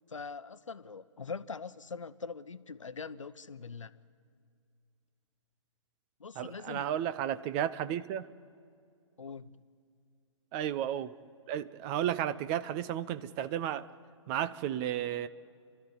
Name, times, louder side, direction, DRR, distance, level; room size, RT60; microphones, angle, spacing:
voice 1, 0.1-3.9 6.2-6.9 9.2-9.6, left 5 dB, 70° left, 14 dB, 0.9 m, -42 dB
voice 2, 6.4-8.3 10.5-11.1 11.5-13.9 14.3-15.3, right 10 dB, 25° right, 13 dB, 0.6 m, -33 dB
30.0 x 12.5 x 9.8 m, 2.3 s
figure-of-eight pair, 125°, 17 cm